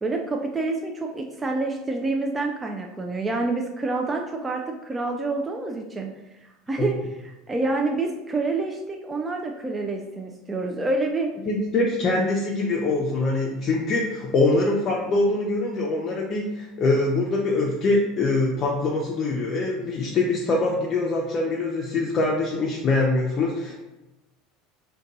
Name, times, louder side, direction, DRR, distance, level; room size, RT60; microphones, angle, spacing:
voice 1, 0.0-6.1 6.4-7.0 7.5-11.3, right 3 dB, 15° right, 1 dB, 0.3 m, -27 dB
voice 2, 11.5-23.7, left 2 dB, 40° left, -3 dB, 0.5 m, -23 dB
2.6 x 2.2 x 3.9 m, 1.0 s
supercardioid pair, 110°, 0 cm